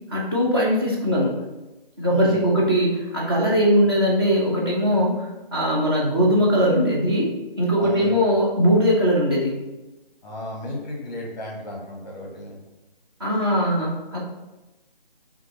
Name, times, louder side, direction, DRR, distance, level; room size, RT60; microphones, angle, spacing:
voice 1, 0.1-1.4 2.0-9.6 13.2-14.2, equal, 25° right, -5 dB, 0.7 m, -20 dB
voice 2, 2.1-2.5 7.8-8.3 10.2-12.6, left 1 dB, 20° left, -2 dB, 0.9 m, -34 dB
5.1 x 2.7 x 3.1 m, 1.1 s
figure-of-eight pair, 165°, 29 cm